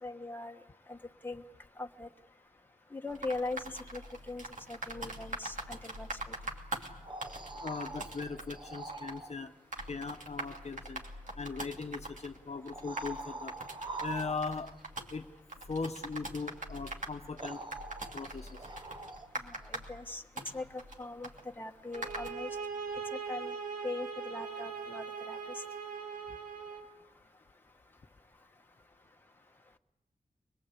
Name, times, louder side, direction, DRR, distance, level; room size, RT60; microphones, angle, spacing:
voice 1, 0.0-0.6 0.9-1.0 1.2-1.4 1.8-2.1 2.9-3.6 3.9-4.0 4.3-4.4 4.7-6.1 19.7-20.2 20.5-20.6 21.0-21.3 21.6-22.5 23.3-23.5 23.8-25.4, left 2 dB, 15° left, 4 dB, 1.2 m, -40 dB
sound 1, 3.1-22.3, right 2 dB, 65° right, 2.7 m, -44 dB
sound 2, 6.8-9.4 11.2-11.3 12.6-14.8 16.7-16.8 17.4-19.5 22.6-22.7, right 3 dB, 35° right, 0.9 m, -44 dB
voice 2, 7.6-9.5 9.9-11.0 11.4-13.5 14.0-14.7 15.1-15.2 15.7-17.6 18.1-18.5, left 4 dB, 50° left, 6 dB, 1.0 m, -39 dB
sound 3, 21.9-26.9, right 5 dB, 85° right, 3.7 m, -40 dB
24.0 x 22.0 x 8.4 m, 0.97 s
wide cardioid pair, 105°, 14 cm